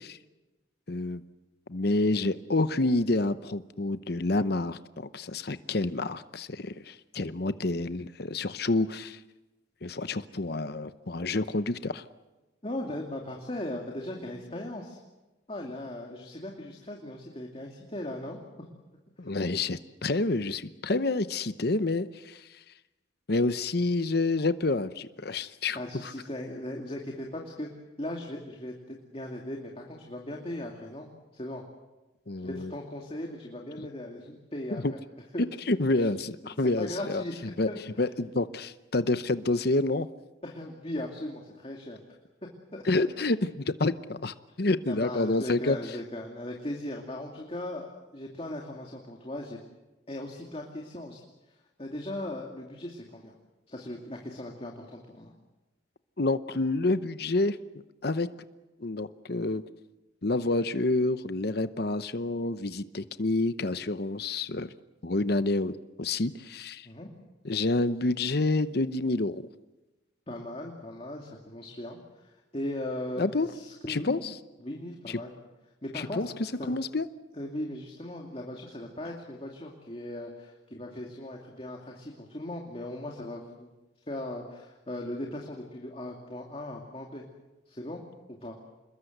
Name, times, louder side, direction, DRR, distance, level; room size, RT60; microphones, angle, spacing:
voice 1, 0.9-1.2 1.7-9.2 9.8-12.0 19.2-22.5 23.3-25.8 32.3-32.7 34.8-34.9 35.7-37.2 37.6-37.7 38.0-40.1 42.8-45.8 56.2-57.6 58.0-58.3 58.8-59.6 60.2-64.7 65.0-66.9 67.4-69.5 73.2-73.5 73.9-74.3 75.1-75.2 75.9-76.3 76.7-77.1, left 2 dB, 55° left, 12 dB, 0.9 m, -28 dB
voice 2, 12.6-15.0 15.5-18.7 20.9-21.1 25.3-25.4 25.7-27.7 28.0-31.6 32.4-35.0 35.3-35.5 35.9-36.1 36.6-37.8 40.4-42.0 42.7-43.0 44.9-49.6 50.1-53.3 53.7-55.3 66.8-67.1 70.3-74.1 74.6-75.3 75.8-76.7 77.3-83.7 84.1-87.2 87.7-88.0 88.3-88.6, left 1 dB, 30° left, 0 dB, 2.5 m, -38 dB
27.5 x 21.5 x 8.0 m, 1.1 s
head